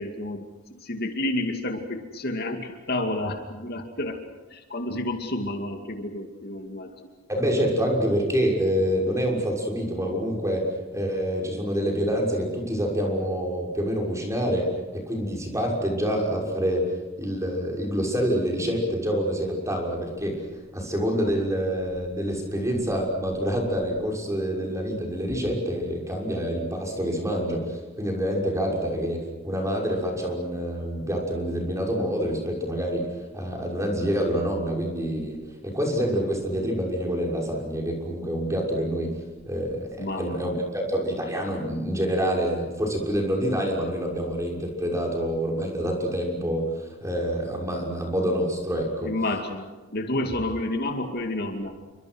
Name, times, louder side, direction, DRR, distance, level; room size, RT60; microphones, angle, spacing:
voice 1, 0.0-4.2 4.5-6.9 40.0-40.7 49.0-51.8, left 1 dB, 50° left, 4 dB, 2.4 m, -30 dB
voice 2, 7.3-10.6 10.9-14.7 14.9-16.9 17.2-20.4 20.7-33.1 33.3-39.1 39.4-49.1, equal, 15° right, 0 dB, 6.1 m, -27 dB
29.0 x 25.0 x 6.3 m, 1.3 s
head